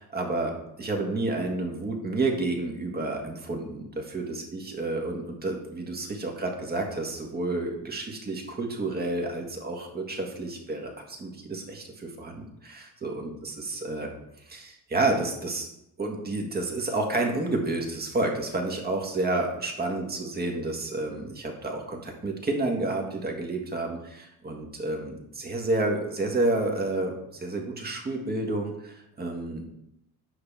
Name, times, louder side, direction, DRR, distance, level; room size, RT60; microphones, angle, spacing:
voice 1, 0.1-0.5 0.8-14.1 14.5-15.7 16.0-29.6, right 2 dB, 25° right, 2 dB, 1.6 m, -30 dB
8.0 x 5.8 x 3.5 m, 0.81 s
cardioid pair, 100°, 40 cm